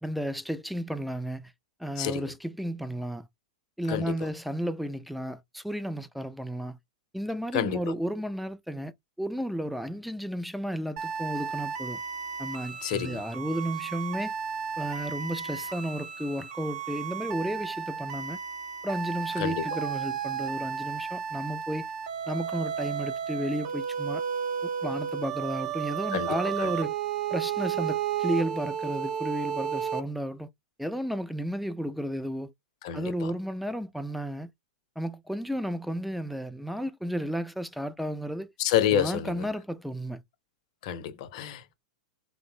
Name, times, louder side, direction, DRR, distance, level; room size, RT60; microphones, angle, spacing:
voice 1, 0.0-1.5 1.8-3.3 3.8-6.8 7.1-8.9 9.2-12.0 12.4-14.3 14.8-18.4 18.8-21.9 22.3-24.2 24.6-26.9 27.3-30.5 30.8-32.5 32.9-34.5 35.0-38.5 38.9-40.2, equal, ahead, 0.3 m, -33 dB
voice 2, 2.0-2.3 3.9-4.3 7.5-7.9 12.8-13.2 19.4-19.7 26.1-26.7 32.8-33.3 38.6-39.5 40.8-41.7, left 10 dB, 55° left, 0.6 m, -29 dB
sound 1, 11.0-30.0, right 8 dB, 55° right, 0.7 m, -33 dB
3.0 x 2.0 x 2.7 m
hypercardioid pair, 105°, 4 cm